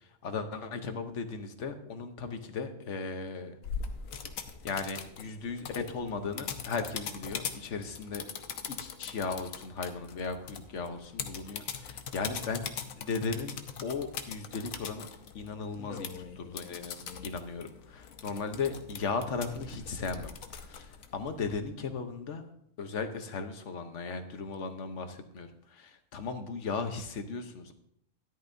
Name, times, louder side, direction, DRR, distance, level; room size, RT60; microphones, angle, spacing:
voice 1, 0.2-3.6 4.6-8.3 8.8-12.6 13.0-15.1 15.3-16.1 16.4-22.5 22.8-27.7, left 4 dB, 65° left, 7 dB, 1.2 m, -36 dB
sound 1, 3.6-21.6, left 6 dB, 85° left, 1.3 m, -42 dB
13.5 x 11.0 x 2.7 m, 0.71 s
omnidirectional pair, 1.4 m